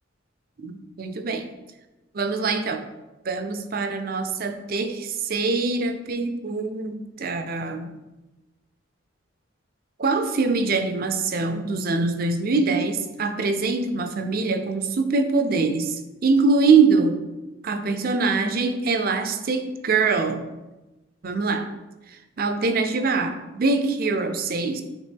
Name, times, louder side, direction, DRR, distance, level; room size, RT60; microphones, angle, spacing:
voice 1, 0.6-1.5 2.1-2.9 3.2-7.9 10.0-17.2 17.6-20.4 21.2-21.7 22.4-24.8, right 4 dB, 50° right, 8 dB, 0.5 m, -23 dB
8.2 x 3.6 x 3.4 m, 1.1 s
head